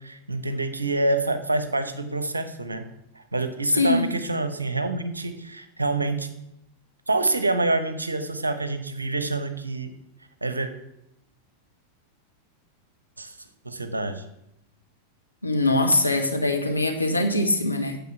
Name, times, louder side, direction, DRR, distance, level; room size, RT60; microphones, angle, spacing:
voice 1, 0.0-2.9 3.1-6.3 7.1-9.9 10.4-10.7 13.2-13.4 13.6-14.2, right 2 dB, 80° right, 10 dB, 1.0 m, -27 dB
voice 2, 3.7-4.1 15.4-18.0, left 2 dB, 85° left, 4 dB, 1.3 m, -22 dB
9.4 x 7.0 x 5.8 m, 0.82 s
figure-of-eight pair, 90°, 0 cm